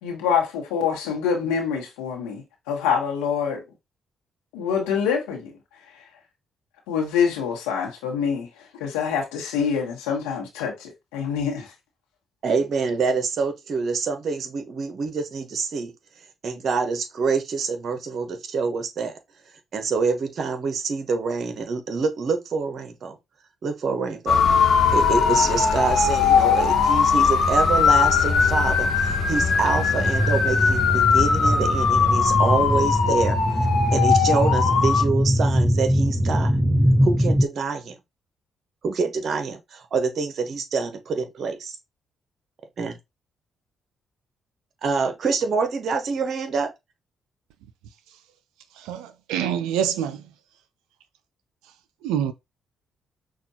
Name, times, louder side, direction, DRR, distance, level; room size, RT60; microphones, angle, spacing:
voice 1, 0.0-3.6 4.5-5.5 6.9-8.5 8.8-11.7, left 7 dB, 90° left, 1.2 m, -25 dB
voice 2, 12.4-15.9 16.4-19.2 19.7-23.2 23.6-24.4 24.9-33.4 33.9-36.5 37.0-37.9 38.8-41.8 42.8-43.0 44.8-46.7, right 4 dB, 60° right, 1.0 m, -26 dB
sound 1, 24.3-35.0, left 6 dB, 70° left, 1.2 m, -20 dB
sound 2, 27.4-37.5, equal, 10° right, 0.9 m, -23 dB
voice 3, 48.8-50.2 52.0-52.3, right 9 dB, 85° right, 0.4 m, -26 dB
5.8 x 2.4 x 2.8 m
hypercardioid pair, 50°, 0 cm